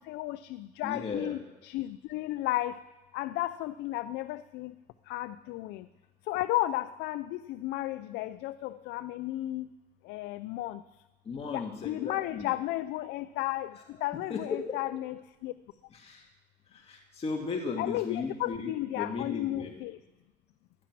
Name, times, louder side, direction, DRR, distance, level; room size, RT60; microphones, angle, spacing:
voice 1, 0.0-2.8 3.1-4.7 5.1-5.9 6.3-9.7 10.0-10.8 11.5-15.5 17.8-20.0, left 16 dB, 90° left, 14 dB, 0.4 m, -34 dB
voice 2, 0.8-1.4 11.2-12.6 13.7-13.8 14.1-14.8 15.9-16.2 16.7-19.8, left 4 dB, 35° left, 0 dB, 1.9 m, -36 dB
16.0 x 10.5 x 6.0 m, 1.1 s
cardioid pair, 110°, 17 cm